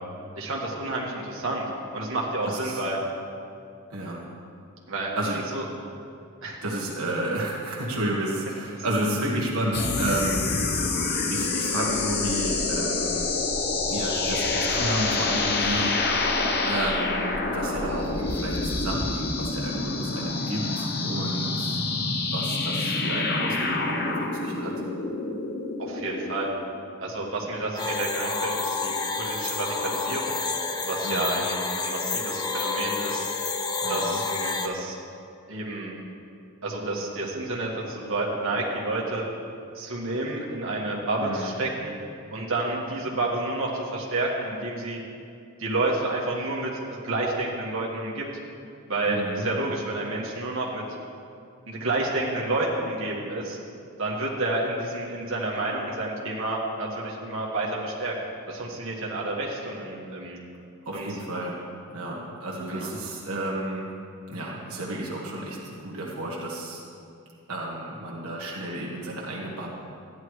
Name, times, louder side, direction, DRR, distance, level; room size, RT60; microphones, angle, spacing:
voice 1, 0.3-3.0 4.9-5.1 5.5-5.6 6.4-6.6 25.8-26.5 27.0-30.4 30.8-33.3 33.9-35.0 35.5-36.0 36.6-39.2 39.7-41.9 42.3-45.0 45.6-46.7 47.0-48.2 48.9-50.8 51.7-53.6 54.0-58.1 58.5-60.4 60.9-61.1 62.7-62.9, right 2 dB, 60° right, -4 dB, 1.6 m, -29 dB
voice 2, 2.5-2.8 3.9-4.3 5.2-5.4 6.6-10.5 11.3-13.3 13.9-16.3 16.6-24.7 31.0-31.4 33.8-34.2 41.2-41.5 49.1-49.4 60.8-61.6 61.9-63.9 64.3-66.8 67.5-69.7, right 1 dB, 80° right, -4 dB, 1.4 m, -31 dB
Tri-Sci-Fi, 9.7-26.5, left 3 dB, 45° left, 0.8 m, -27 dB
sound 1, 27.8-34.7, left 4 dB, 20° left, 0.4 m, -29 dB
14.0 x 10.0 x 3.2 m, 2.5 s
head